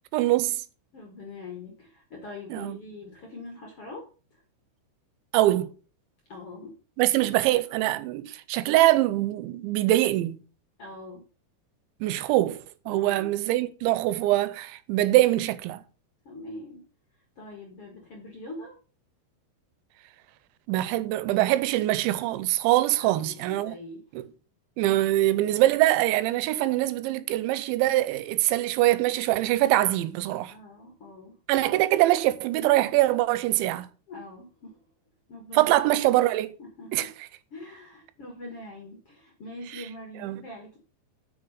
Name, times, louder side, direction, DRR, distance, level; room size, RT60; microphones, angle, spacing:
voice 1, 0.1-0.6 2.5-2.8 5.3-5.7 7.0-10.4 12.0-15.8 20.7-23.8 24.1-24.3 24.8-30.5 31.5-33.9 35.5-36.5 36.9-37.1 40.2-40.4, right 16 dB, 90° right, 3.0 m, -23 dB
voice 2, 0.9-4.4 6.3-6.8 10.8-11.2 12.9-13.3 16.3-16.8 17.4-18.8 23.0-24.0 30.5-31.4 34.1-34.8 35.3-35.9 36.6-37.1 37.5-40.8, left 2 dB, 55° left, 1.7 m, -43 dB
7.9 x 6.3 x 5.4 m
omnidirectional pair, 5.2 m